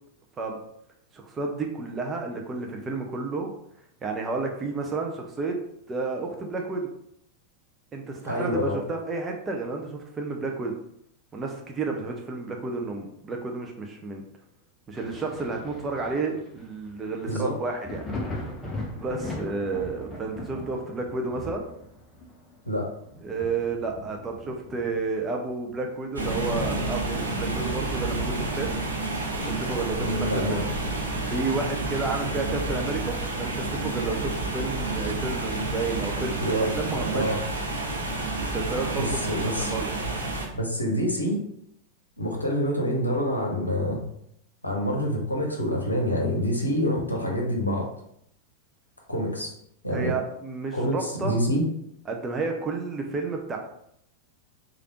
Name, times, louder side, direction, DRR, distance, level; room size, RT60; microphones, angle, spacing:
voice 1, 1.1-3.5 4.0-5.6 5.9-6.9 7.9-10.7 11.3-14.2 14.9-18.0 18.3-18.5 18.9-21.6 23.2-28.8 29.3-30.6 31.3-37.4 38.4-39.9 49.9-51.4 52.1-53.6, right 3 dB, 20° right, 2 dB, 0.4 m, -31 dB
voice 2, 8.2-8.8 17.3-17.6 22.7-22.9 30.0-30.6 36.4-37.4 38.9-39.7 40.5-41.4 42.2-44.0 44.6-47.9 49.1-49.5 49.8-50.1 50.7-51.6, equal, 85° left, 0 dB, 0.7 m, -27 dB
Thunder, 14.9-26.3 26.7-28.2 28.5-28.6 29.2-30.5 31.9-32.0, left 1 dB, 15° left, 0.7 m, -40 dB
sound 1, 26.1-40.5, right 2 dB, 80° right, 0.6 m, -30 dB
3.2 x 2.4 x 2.9 m, 0.74 s
figure-of-eight pair, 90°, 0 cm